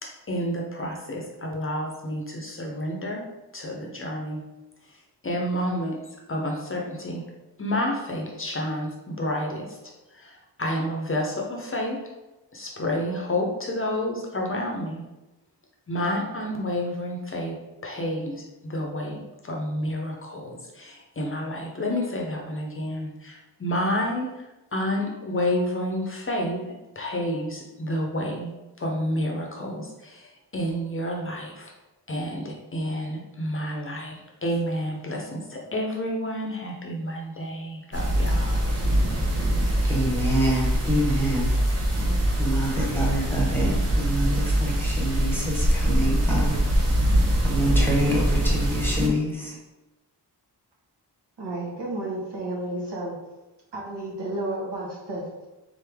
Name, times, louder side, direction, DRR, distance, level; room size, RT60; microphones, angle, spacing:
voice 1, 0.0-3.2 3.5-4.4 4.9-5.0 5.2-7.2 7.6-9.8 10.1-12.1 12.5-15.0 15.9-17.6 17.8-24.4 24.7-28.5 28.8-31.7 32.1-34.2 34.4-38.6, left 1 dB, 30° left, 0 dB, 0.6 m, -30 dB
sound 1, 37.9-49.1, right 1 dB, 40° right, 0.8 m, -23 dB
voice 2, 39.9-41.5 42.4-46.6 47.4-49.5, right 1 dB, 5° left, -4 dB, 0.9 m, -26 dB
voice 3, 51.4-53.1 53.7-55.5, right 2 dB, 80° right, -3 dB, 1.3 m, -32 dB
3.7 x 3.3 x 3.4 m, 1.1 s
wide cardioid pair, 165°, 40 cm